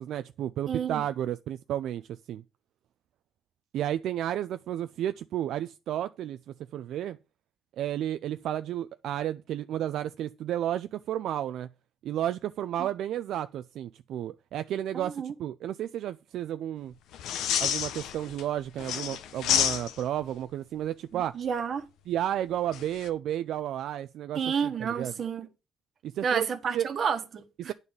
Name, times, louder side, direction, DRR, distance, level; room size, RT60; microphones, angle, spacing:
voice 1, 0.0-2.4 3.7-6.4 6.7-7.2 7.8-11.7 12.0-16.9 17.6-21.4 22.1-25.1 26.0-26.9 27.6-27.7, right 11 dB, 70° right, 0.4 m, -32 dB
voice 2, 0.7-1.0 12.8-12.9 14.9-15.3 21.1-21.8 24.3-25.5 26.2-27.7, right 7 dB, 50° right, 1.3 m, -30 dB
sound 1, 17.1-18.4 18.8-20.2 22.7-23.1, left 9 dB, 85° left, 0.8 m, -29 dB
9.5 x 4.0 x 7.2 m
cardioid pair, 120°, 0 cm